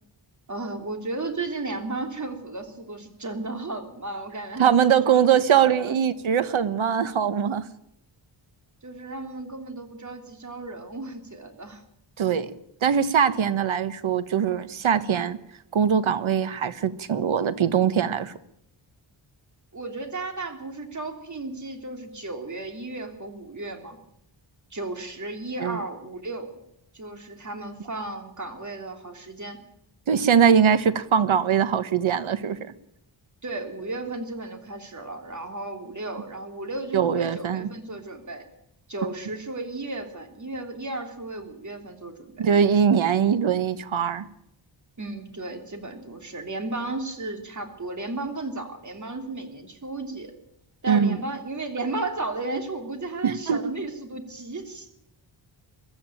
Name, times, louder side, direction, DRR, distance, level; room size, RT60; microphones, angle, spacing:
voice 1, 0.5-6.0 8.8-11.8 19.7-24.0 24.7-26.5 26.9-29.6 33.4-38.4 38.9-42.5 45.0-50.3 50.8-54.9, right 2 dB, 40° right, 5 dB, 3.1 m, -34 dB
voice 2, 4.6-7.6 12.2-12.5 12.8-15.4 15.7-18.3 25.6-25.8 30.1-32.7 36.9-37.7 42.4-44.3 50.9-51.2 53.2-53.6, right 7 dB, 90° right, 13 dB, 1.3 m, -22 dB
23.0 x 12.5 x 9.1 m, 0.79 s
wide cardioid pair, 130°, 46 cm